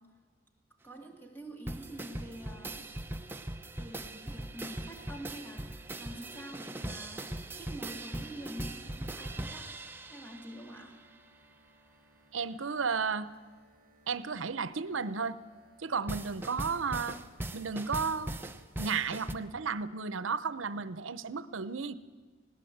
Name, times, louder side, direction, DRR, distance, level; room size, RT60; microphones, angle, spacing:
voice 1, 0.8-2.9 3.8-9.8 10.1-11.0, right 1 dB, 10° left, 2 dB, 2.3 m, -46 dB
sound 1, 1.7-10.8 16.1-19.3, right 1 dB, 10° right, 0.7 m, -40 dB
sound 2, 4.2-17.8, right 1 dB, 45° right, 4.3 m, -65 dB
voice 2, 12.3-13.3 14.1-15.4 15.8-17.2 17.5-18.3 18.8-21.9, right 5 dB, 80° right, 15 dB, 0.7 m, -33 dB
19.5 x 16.5 x 8.0 m, 1.4 s
head